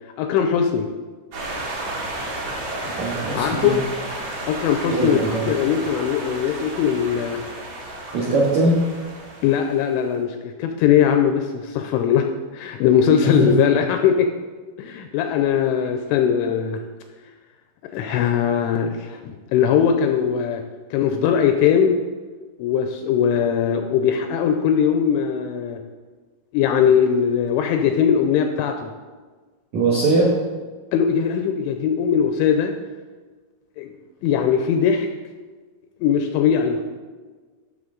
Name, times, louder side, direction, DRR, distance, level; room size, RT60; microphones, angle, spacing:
voice 1, 0.2-0.9 3.4-3.8 4.5-5.2 5.5-7.4 9.4-12.3 12.5-14.3 14.8-16.8 17.9-20.6 20.9-22.0 22.6-25.8 26.5-28.9 30.9-32.8 33.8-33.9 34.2-35.1 36.0-37.0, left 8 dB, 85° left, 5 dB, 2.8 m, -20 dB
sound 1, 1.3-10.0, right 1 dB, 50° right, 2.8 m, -32 dB
voice 2, 2.8-3.7 4.9-5.5 8.1-8.8 13.2-13.5 29.7-30.3, right 2 dB, 80° right, -5 dB, 1.6 m, -21 dB
14.0 x 6.3 x 3.8 m, 1.4 s
omnidirectional pair, 5.9 m